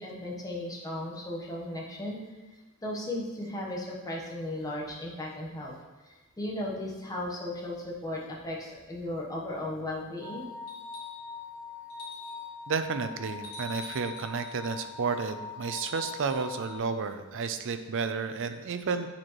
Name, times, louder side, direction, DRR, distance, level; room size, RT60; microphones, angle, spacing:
voice 1, 0.0-2.2 2.8-5.7 6.0-10.5, left 1 dB, 15° left, -3 dB, 1.0 m, -36 dB
sound 1, 10.2-16.8, left 5 dB, 10° right, 1.1 m, -42 dB
sound 2, 10.7-11.3 11.9-12.5 13.4-14.8 15.6-16.8 18.4-18.5, left 2 dB, 75° left, 1.8 m, -46 dB
voice 2, 12.7-19.1, right 5 dB, 60° right, 9 dB, 0.5 m, -32 dB
8.7 x 4.4 x 3.1 m, 1.2 s
head